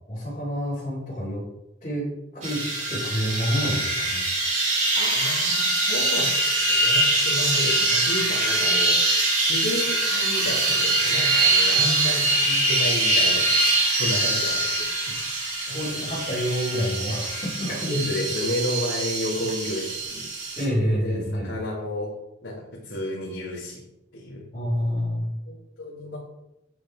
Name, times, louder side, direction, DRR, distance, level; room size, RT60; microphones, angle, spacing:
voice 1, 0.1-1.4 1.8-2.6 2.9-4.3 11.7-12.0 12.4-12.6 15.0-15.1 15.7-18.0 20.6-21.5 24.5-25.3, equal, 30° left, -10 dB, 3.2 m, -28 dB
sound 1, 2.4-20.6, right 2 dB, 35° right, 2.4 m, -23 dB
voice 2, 5.0-9.0 9.4-12.2 12.7-13.5 13.9-14.9 15.7-16.1 17.9-20.2 20.8-22.1 22.4-23.8 24.1-24.4 25.5-26.2, left 1 dB, 70° left, -7 dB, 2.1 m, -31 dB
8.9 x 5.5 x 4.7 m, 0.87 s
head